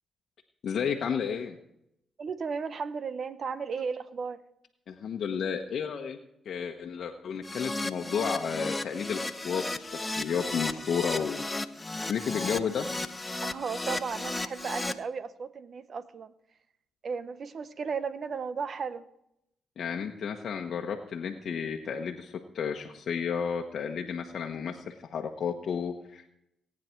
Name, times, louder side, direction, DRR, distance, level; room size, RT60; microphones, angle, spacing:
voice 1, 0.6-1.6 4.9-6.2 6.4-11.4 12.1-12.9 19.8-26.3, left 7 dB, 65° left, 2 dB, 1.1 m, -32 dB
voice 2, 2.2-4.4 13.4-16.3 17.0-19.0, right 5 dB, 55° right, 13 dB, 0.9 m, -35 dB
Keyboard (musical), 7.4-14.9, left 2 dB, 20° left, 1.0 m, -34 dB
18.0 x 9.6 x 4.6 m, 0.78 s
supercardioid pair, 60°, 0 cm